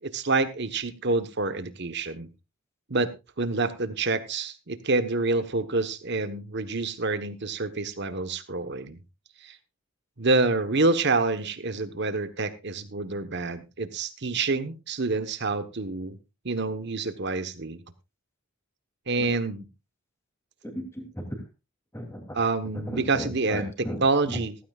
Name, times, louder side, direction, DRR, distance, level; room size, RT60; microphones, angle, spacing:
voice 1, 0.0-2.3 2.9-3.1 3.4-9.0 9.4-9.6 10.2-16.2 16.4-17.8 19.1-19.7 22.3-24.5, right 3 dB, 50° right, 11 dB, 1.2 m, -27 dB
voice 2, 20.6-21.2 21.9-22.4 22.7-24.0, equal, 10° left, 3 dB, 3.0 m, -36 dB
16.0 x 15.0 x 2.4 m, 0.27 s
head